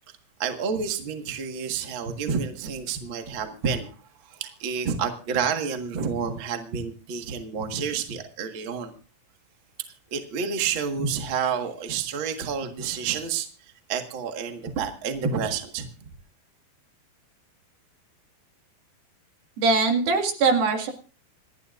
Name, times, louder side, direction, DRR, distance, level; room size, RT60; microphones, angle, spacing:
voice 1, 0.4-3.9 4.2-8.9 10.1-13.5 13.9-15.9, right 6 dB, 45° right, 4 dB, 1.8 m, -29 dB
voice 2, 19.6-20.9, right 4 dB, 75° right, 4 dB, 3.9 m, -21 dB
27.5 x 11.5 x 2.5 m, 0.37 s
omnidirectional pair, 4.3 m